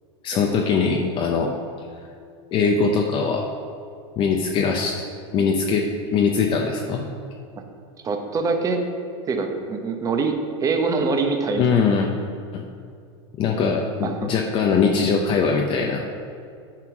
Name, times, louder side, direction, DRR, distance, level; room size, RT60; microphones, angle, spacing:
voice 1, 0.2-1.5 2.5-3.4 4.2-5.0 5.3-5.9 6.1-7.0 11.6-12.1 12.5-12.6 13.4-16.1, left 5 dB, 35° left, 1 dB, 0.7 m, -21 dB
voice 2, 8.0-8.8 9.2-10.3 10.6-11.6 14.0-14.3, right 4 dB, 25° right, 5 dB, 0.9 m, -24 dB
9.7 x 4.5 x 5.9 m, 2.3 s
supercardioid pair, 135°, 15 cm